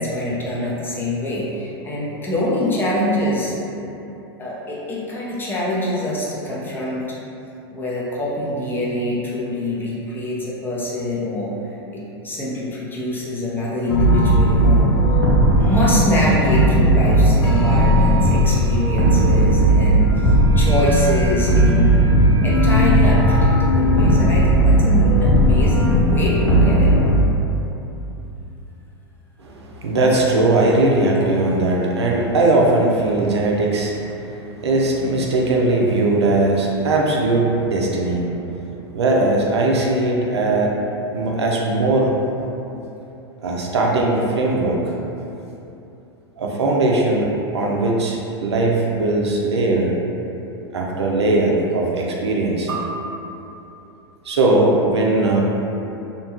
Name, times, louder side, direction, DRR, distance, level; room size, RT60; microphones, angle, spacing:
voice 1, 0.0-3.6 4.4-7.1 7.7-11.5 11.9-14.9 15.6-26.9, left 1 dB, 15° left, -6 dB, 0.6 m, -24 dB
sound 1, 13.9-27.1, right 1 dB, 80° left, 0.7 m, -16 dB
voice 2, 29.4-40.8 41.1-42.2 43.4-44.9 46.4-49.9 50.7-52.9 54.2-55.4, right 2 dB, 85° right, -2 dB, 0.5 m, -19 dB
2.8 x 2.2 x 2.8 m, 2.9 s
hypercardioid pair, 100°, 14 cm